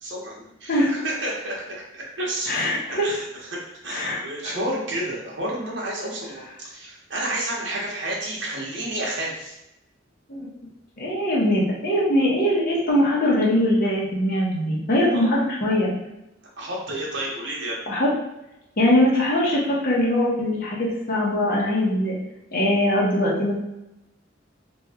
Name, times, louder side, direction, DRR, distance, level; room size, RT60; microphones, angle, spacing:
voice 1, 0.0-2.7 3.0-3.5 3.8-9.6 15.1-15.3 16.6-17.8, right 1 dB, 75° right, -4 dB, 1.1 m, -30 dB
voice 2, 2.5-3.1 3.9-4.6 10.3-10.5 11.0-15.9 17.9-18.1 18.8-22.1 22.5-23.5, left 1 dB, 55° left, -4 dB, 1.1 m, -22 dB
3.1 x 2.6 x 3.5 m, 0.90 s
head